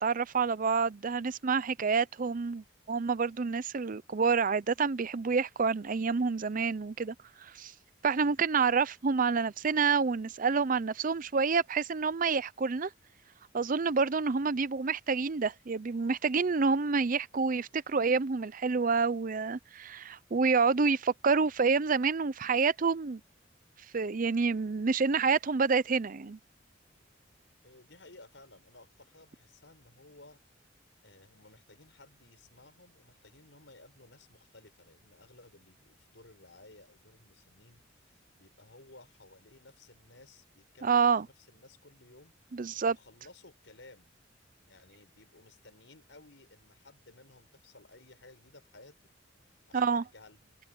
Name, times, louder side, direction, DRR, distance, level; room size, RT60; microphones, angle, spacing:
voice 1, 0.0-7.1 7.4-7.7 8.0-12.9 13.5-23.2 23.9-26.4 40.8-41.3 42.5-43.0 49.7-50.0, right 5 dB, 45° right, 0.6 m, -28 dB
voice 2, 27.6-30.4 31.0-42.3 42.9-44.1 44.7-49.0 49.7-50.5, left 2 dB, 70° left, 6.4 m, -57 dB
head